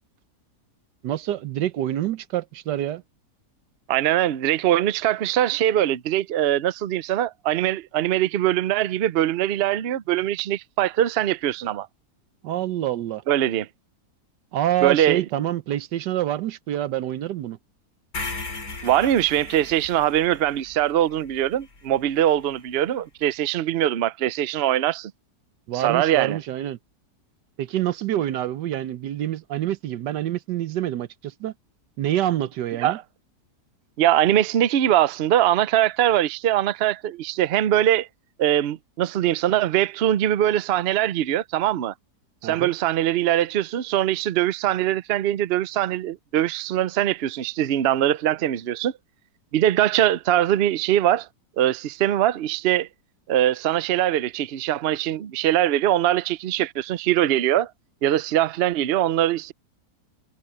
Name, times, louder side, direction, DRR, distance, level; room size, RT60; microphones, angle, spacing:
voice 1, 1.0-3.0 12.4-13.2 14.5-17.6 25.7-26.8 27.6-31.5 32.0-33.0 42.4-42.7, right 12 dB, 90° right, 1.4 m, -26 dB
voice 2, 3.9-11.9 13.3-13.7 14.8-15.2 18.8-25.1 25.7-26.4 32.8-33.0 34.0-38.1 38.4-41.9 42.4-48.9 49.5-51.3 51.6-52.9 53.3-57.7 58.0-59.5, right 12 dB, 65° right, 0.6 m, -22 dB
sound 1, 18.1-22.3, left 3 dB, 60° left, 3.6 m, -37 dB
omnidirectional pair, 1.8 m